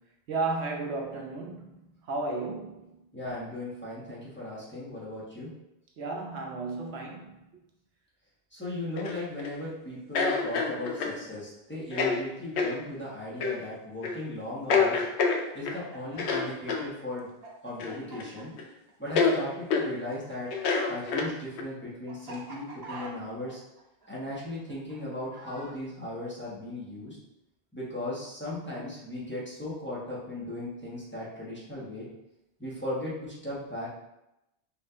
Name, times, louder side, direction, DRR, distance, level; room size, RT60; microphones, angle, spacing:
voice 1, 0.3-2.9 6.0-7.6, right 3 dB, 90° right, 1 dB, 1.0 m, -34 dB
voice 2, 3.1-5.5 8.5-15.0 15.5-17.3 17.6-18.5 19.0-23.6 24.1-27.2 27.7-32.1 32.6-33.9, left 1 dB, 10° left, -9 dB, 1.3 m, -37 dB
sound 1, 9.0-9.5 10.1-11.2 11.9-12.2 12.6-12.7 13.4-13.6 14.0-14.2 14.7-15.8 16.2-16.9 17.8-18.3 18.6-18.7 19.2-19.4 19.7-19.9 20.5-21.6, left 4 dB, 90° left, 0.9 m, -27 dB
Chicken rooster, 15.5-19.9 20.1-25.7, right 3 dB, 70° right, 1.2 m, -46 dB
5.3 x 3.3 x 2.5 m, 0.90 s
omnidirectional pair, 1.1 m